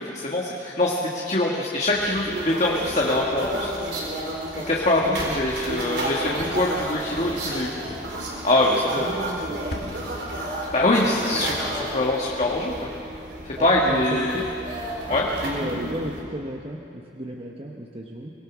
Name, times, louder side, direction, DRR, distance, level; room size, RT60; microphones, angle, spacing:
voice 1, 0.0-3.7 4.6-7.9 8.4-9.1 10.7-12.7 13.4-14.4 15.1-15.3, left 1 dB, 40° left, -3 dB, 1.7 m, -23 dB
sound 1, 1.9-16.2, right 1 dB, 70° right, 4.2 m, -32 dB
voice 2, 5.0-5.4 8.7-9.6 13.6-14.4 15.4-18.3, right 1 dB, 30° right, 0 dB, 1.1 m, -34 dB
sound 2, 5.7-9.0 9.3-11.3 11.6-11.9, left 1 dB, 60° left, 2.3 m, -43 dB
25.5 x 19.0 x 6.2 m, 2.7 s
head